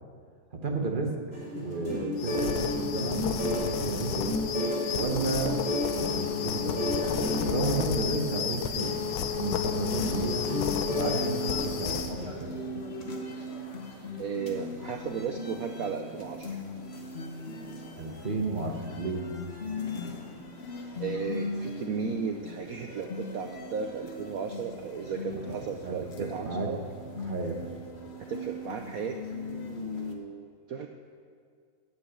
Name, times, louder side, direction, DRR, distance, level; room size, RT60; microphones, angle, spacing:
voice 1, 0.5-1.2 1.5-4.2 4.9-5.6 5.9-10.5 10.8-12.6 18.0-19.3 25.3-26.7 27.2-27.7, right 3 dB, 35° right, 2 dB, 0.8 m, -33 dB
sound 1, 1.3-11.6, left 1 dB, 25° left, 3.1 m, -33 dB
sound 2, 2.2-12.1, left 8 dB, 90° left, 1.6 m, -32 dB
sound 3, 11.1-30.1, left 2 dB, 40° left, 1.0 m, -39 dB
voice 2, 14.2-16.6 21.0-26.8 28.2-30.9, right 6 dB, 85° right, 4 dB, 0.7 m, -35 dB
9.1 x 7.7 x 8.4 m, 2.1 s
omnidirectional pair, 2.2 m